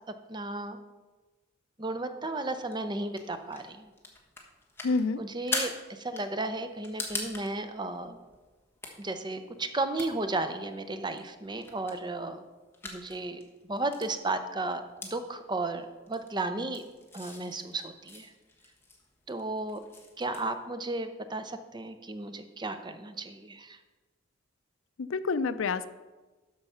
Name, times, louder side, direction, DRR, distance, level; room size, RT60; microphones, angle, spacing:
voice 1, 0.3-0.8 1.8-3.9 5.2-8.2 9.0-12.4 12.8-14.8 15.1-16.8 17.1-18.3 19.3-19.8 20.2-23.8, right 2 dB, 20° right, 9 dB, 0.6 m, -34 dB
sound 1, 2.3-20.5, left 3 dB, 10° left, 1.3 m, -43 dB
voice 2, 4.8-5.2 25.0-25.9, left 4 dB, 70° left, 12 dB, 0.5 m, -28 dB
12.5 x 4.8 x 5.6 m, 1.2 s
head